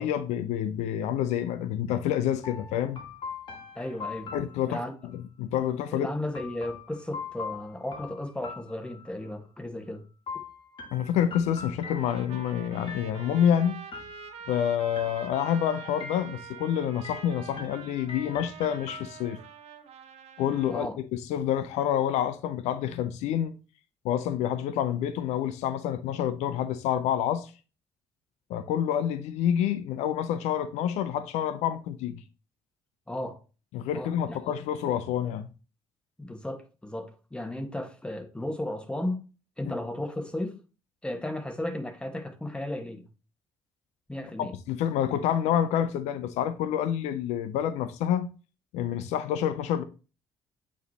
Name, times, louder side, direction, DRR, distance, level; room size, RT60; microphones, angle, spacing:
voice 1, 0.0-3.0 4.3-4.8 5.1-6.1 10.9-13.8 14.5-19.4 20.4-20.9 21.3-23.5 24.0-27.5 28.5-32.2 33.7-35.5 39.7-39.8 44.4-48.3 48.7-49.8, left 10 dB, 80° left, 0.5 m, -28 dB
sound 1, 2.4-5.2 6.3-9.4 10.3-12.5 12.9-13.5 13.9-14.6 15.0-15.6 16.0-16.7 17.0-19.5, left 5 dB, 45° left, 1.6 m, -42 dB
voice 2, 3.7-4.3 4.7-4.9 5.9-10.0 10.3-10.4 20.7-20.9 33.1-33.4 33.9-34.4 36.2-39.2 39.6-40.6 41.0-43.1 44.1-44.5, left 1 dB, 10° left, 1.4 m, -34 dB
Trumpet, 11.8-20.9, right 9 dB, 70° right, 0.9 m, -45 dB
8.3 x 3.1 x 4.0 m
supercardioid pair, 65°, 11 cm